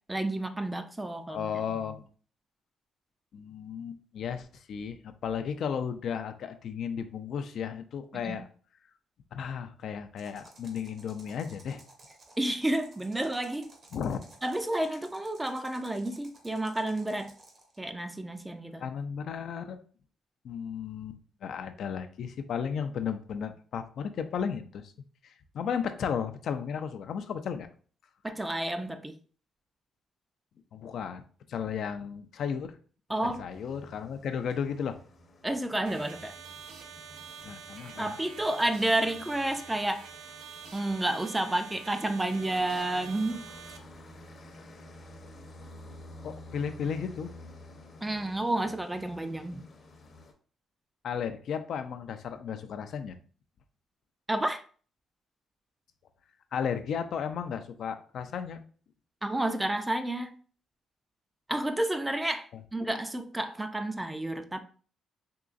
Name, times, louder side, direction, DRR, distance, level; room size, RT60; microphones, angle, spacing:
voice 1, 0.1-1.7 8.2-8.4 12.4-13.7 14.4-17.3 17.8-18.8 28.2-29.1 33.1-33.5 35.4-36.3 38.0-40.0 40.7-43.4 48.0-49.6 54.3-54.6 59.2-60.3 61.5-64.6, right 1 dB, 10° right, 0.4 m, -30 dB
voice 2, 1.3-2.1 3.3-8.5 9.3-11.8 13.9-14.2 18.8-19.8 20.4-24.8 25.2-27.7 30.7-31.2 31.5-32.7 33.2-35.0 37.4-38.2 46.2-47.3 51.0-53.2 56.5-58.6, left 7 dB, 65° left, 0.4 m, -34 dB
sound 1, 10.2-17.8, right 2 dB, 50° right, 1.0 m, -55 dB
sound 2, 33.5-50.3, left 1 dB, 45° left, 0.7 m, -51 dB
sound 3, 35.9-43.8, right 7 dB, 85° right, 0.4 m, -47 dB
3.6 x 3.0 x 2.4 m
cardioid pair, 90°, 0 cm